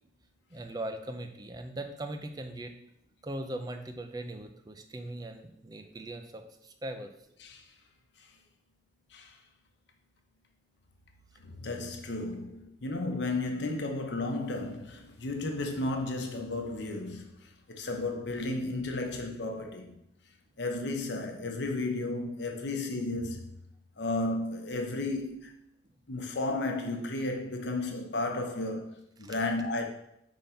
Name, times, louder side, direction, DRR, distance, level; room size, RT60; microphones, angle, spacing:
voice 1, 0.5-2.7 3.2-7.1 29.2-29.3, right 1 dB, 20° right, 0.5 m, -40 dB
voice 2, 11.4-19.9 20.6-23.4 24.0-25.5 26.1-29.9, left 2 dB, 80° left, 0.9 m, -33 dB
5.3 x 3.6 x 5.6 m
head